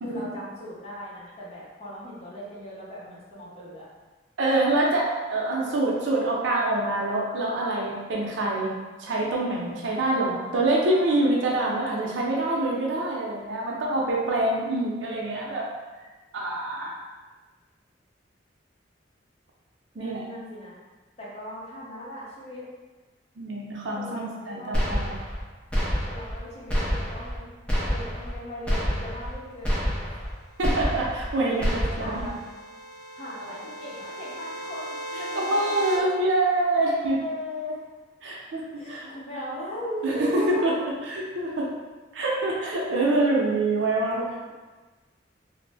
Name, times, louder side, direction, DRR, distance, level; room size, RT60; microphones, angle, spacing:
voice 1, 0.0-3.8 19.9-20.8 21.2-22.6 23.9-25.0 26.0-27.5 27.8-29.9 31.4-31.6 32.0-32.4 33.1-35.7 36.8-37.8 38.8-40.8, equal, 35° left, -7 dB, 0.8 m, -38 dB
voice 2, 4.4-8.7 9.0-15.7 16.3-17.0 20.0-20.3 23.4-25.1 30.6-32.2 35.3-37.1 38.2-39.1 40.0-40.8 41.0-41.7 42.1-44.5, right 2 dB, 80° right, -3 dB, 0.5 m, -25 dB
sound 1, 24.7-25.4 25.7-26.4 26.7-27.4 27.7-28.4 28.7-29.3 29.6-30.3 30.6-31.3 31.6-32.3, equal, 5° left, 0.5 m, -27 dB
sound 2, 31.0-36.0, right 1 dB, 75° left, 0.8 m, -37 dB
2.5 x 2.0 x 3.3 m, 1.3 s
head